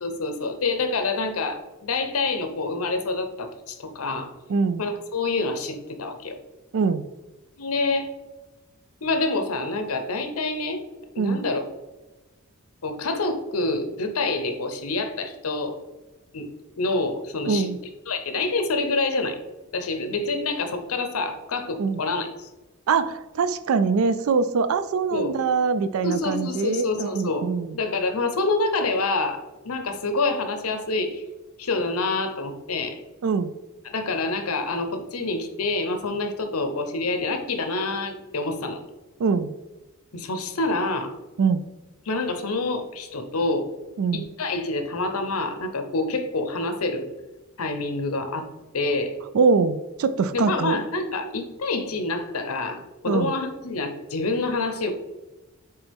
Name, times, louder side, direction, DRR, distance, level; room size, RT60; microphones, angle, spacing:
voice 1, 0.0-4.3 4.8-6.4 7.6-8.1 9.0-10.8 11.1-11.6 12.8-15.8 16.3-16.5 16.8-17.7 18.1-19.4 19.7-22.5 25.1-25.3 26.0-27.5 27.7-31.2 31.6-33.0 33.8-38.8 40.1-41.1 42.1-43.7 44.1-47.1 47.6-48.5 48.7-49.2 50.3-54.9, left 3 dB, 80° left, 7 dB, 0.8 m, -27 dB
voice 2, 4.5-4.8 6.7-7.0 11.2-11.4 17.5-17.8 21.8-22.0 22.9-27.8 33.2-33.5 39.2-39.5 41.4-41.6 44.0-44.3 49.3-50.8 53.1-53.3, right 5 dB, 70° right, 12 dB, 0.4 m, -23 dB
8.0 x 3.4 x 3.5 m, 1.1 s
head